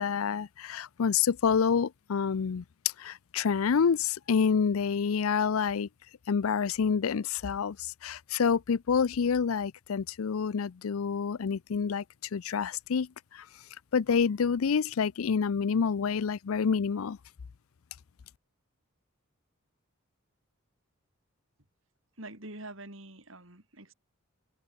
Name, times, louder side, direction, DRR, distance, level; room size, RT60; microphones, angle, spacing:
voice 1, 0.0-2.6 3.0-5.9 6.3-7.8 8.0-12.0 12.3-13.1 13.3-13.4 13.9-17.2, left 6 dB, 80° left, 0.5 m, -27 dB
voice 2, 22.2-23.9, right 2 dB, 65° right, 5.4 m, -45 dB
head